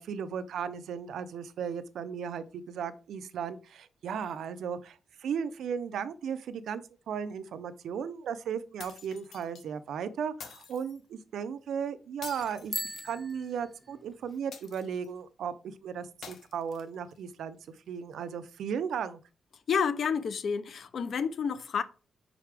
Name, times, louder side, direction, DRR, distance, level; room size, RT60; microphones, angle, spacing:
voice 1, 0.0-12.7 13.0-17.6 17.9-19.2, right 7 dB, 85° right, 0.5 m, -36 dB
sound 1, 8.8-9.6 10.4-11.0 12.2-13.4 14.5-15.2 16.2-17.2, left 6 dB, 70° left, 1.0 m, -47 dB
Bicycle bell, 12.6-14.4, right 1 dB, 5° right, 0.5 m, -40 dB
voice 2, 19.7-21.8, left 6 dB, 55° left, 0.5 m, -29 dB
5.7 x 4.9 x 3.4 m
wide cardioid pair, 165°, 0 cm